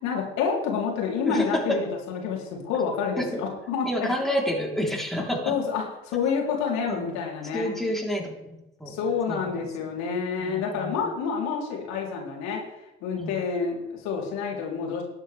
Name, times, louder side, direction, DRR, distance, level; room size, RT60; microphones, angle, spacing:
voice 1, 0.0-4.1 5.5-7.8 8.9-12.6 13.0-15.0, left 6 dB, 60° left, -1 dB, 3.5 m, -28 dB
voice 2, 1.3-1.6 3.2-3.3 3.8-5.5 6.9-7.1 7.5-9.0 9.3-9.7 10.4-11.1 13.2-13.3, equal, ahead, -2 dB, 3.9 m, -29 dB
19.5 x 8.1 x 3.5 m, 0.95 s
figure-of-eight pair, 60°, 31 cm